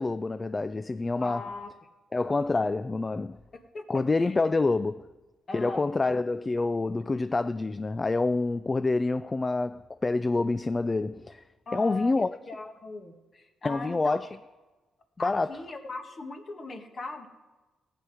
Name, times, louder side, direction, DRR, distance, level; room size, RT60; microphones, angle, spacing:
voice 1, 0.0-1.5 2.1-3.4 3.9-5.1 5.5-11.4 11.7-12.4 13.6-14.3 15.2-15.6, left 3 dB, 25° left, 0.3 m, -27 dB
voice 2, 1.2-1.7 3.7-3.8 4.2-4.4 5.5-5.9 11.7-12.1 12.5-14.2 15.2-17.3, left 3 dB, 40° left, 1.6 m, -39 dB
16.0 x 8.1 x 4.9 m
cardioid pair, 90°, 0 cm